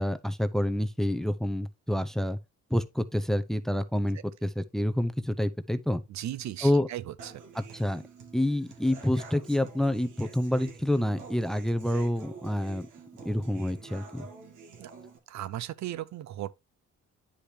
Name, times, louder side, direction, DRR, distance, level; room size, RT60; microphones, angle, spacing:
voice 1, 0.0-2.4 2.7-6.0 6.6-6.9 7.5-8.0 8.3-12.9 13.2-14.3, left 1 dB, ahead, 0.7 m, -28 dB
voice 2, 6.1-7.4 14.8-14.9 15.3-16.5, right 12 dB, 65° right, 0.6 m, -37 dB
Human voice / Acoustic guitar, 7.2-15.2, right 4 dB, 80° right, 2.2 m, -48 dB
10.0 x 5.1 x 2.8 m
cardioid pair, 90°, 30 cm